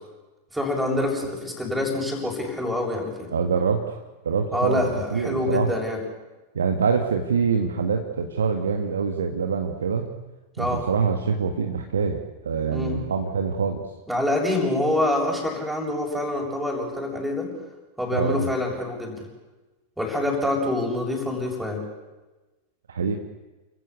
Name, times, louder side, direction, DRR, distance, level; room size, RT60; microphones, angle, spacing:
voice 1, 0.5-3.3 4.5-6.0 10.6-10.8 12.7-13.0 14.1-17.5 18.0-19.3 20.0-21.8, left 1 dB, 5° right, -1 dB, 7.6 m, -26 dB
voice 2, 3.3-4.0 4.2-5.7 6.5-10.1 10.6-13.8 18.1-18.5 22.9-23.2, right 5 dB, 70° right, 5 dB, 1.7 m, -25 dB
30.0 x 15.0 x 8.4 m, 1.2 s
figure-of-eight pair, 90°, 0 cm